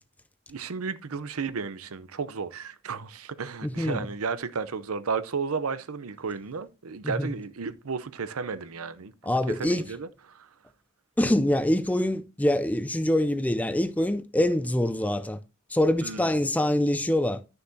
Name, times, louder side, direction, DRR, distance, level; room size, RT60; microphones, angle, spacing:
voice 1, 0.5-9.1 9.5-10.5 16.0-16.3, right 5 dB, 90° right, 0.7 m, -33 dB
voice 2, 3.6-4.1 7.0-7.3 9.2-9.9 11.2-15.4 15.7-17.4, left 1 dB, 5° left, 0.4 m, -25 dB
11.5 x 6.6 x 2.7 m
head